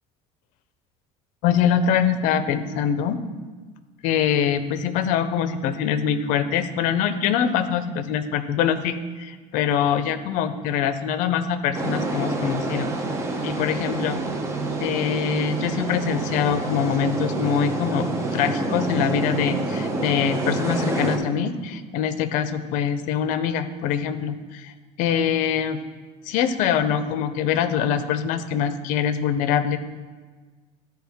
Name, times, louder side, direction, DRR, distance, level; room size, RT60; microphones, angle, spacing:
voice 1, 1.4-3.2 4.0-12.9 13.4-14.2 14.8-25.8 26.3-29.8, left 8 dB, 60° left, 11 dB, 0.6 m, -24 dB
sound 1, 11.7-21.2, right 2 dB, 20° right, 0.7 m, -27 dB
12.5 x 4.6 x 3.5 m, 1.4 s
cardioid pair, 160°, 15 cm